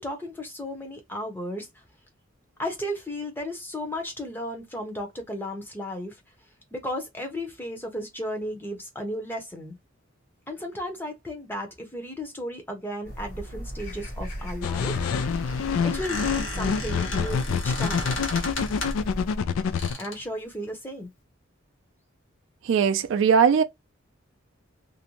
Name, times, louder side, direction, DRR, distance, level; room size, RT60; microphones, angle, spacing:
voice 1, 0.0-1.8 2.6-6.2 6.7-9.8 10.5-15.0 15.8-18.2 20.0-21.1, equal, 10° left, 0.6 m, -34 dB
sound 1, 13.0-19.4, equal, 45° left, 1.2 m, -36 dB
sound 2, 14.6-19.9, left 6 dB, 80° left, 0.3 m, -27 dB
Squeak, 14.8-19.1 19.8-20.3, left 2 dB, 65° left, 1.0 m, -35 dB
voice 2, 22.7-23.6, right 6 dB, 65° right, 0.3 m, -19 dB
2.5 x 2.1 x 2.9 m
head